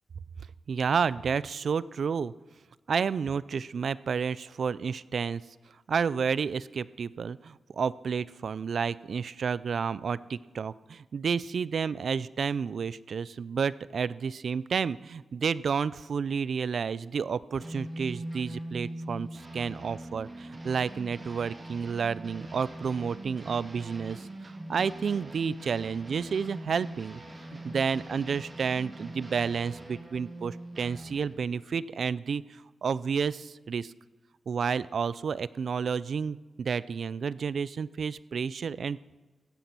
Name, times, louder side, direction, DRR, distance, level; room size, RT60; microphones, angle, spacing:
voice 1, 0.7-2.3 2.9-5.4 5.9-24.3 24.7-27.2 27.5-32.4 32.8-33.9 34.5-39.0, right 6 dB, 65° right, 19 dB, 0.4 m, -30 dB
sound 1, 17.6-31.4, right 1 dB, 30° right, 3.0 m, -42 dB
16.0 x 9.5 x 6.1 m, 1.2 s
wide cardioid pair, 100°, 0 cm